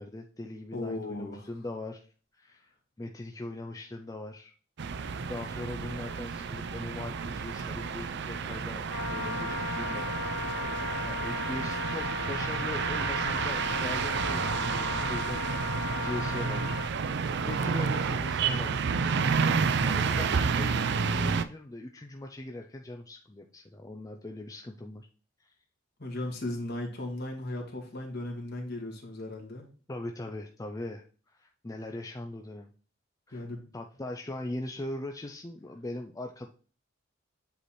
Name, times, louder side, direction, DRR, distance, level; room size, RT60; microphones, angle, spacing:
voice 1, 0.0-2.1 2.3-2.7 3.0-4.5 5.3-16.8 17.5-18.9 19.8-25.1 25.4-25.5 29.9-32.7 33.3-33.4 33.7-36.5, left 1 dB, 15° left, 3 dB, 0.5 m, -41 dB
voice 2, 0.7-1.5 26.0-29.6 33.3-33.7, left 1 dB, 55° left, 0 dB, 2.0 m, -36 dB
sound 1, 4.8-21.4, right 5 dB, 55° right, 0.5 m, -30 dB
Wind instrument woodwind instrument, 8.9-16.9, left 3 dB, 70° left, 2.4 m, -36 dB
8.1 x 3.3 x 4.2 m, 0.40 s
head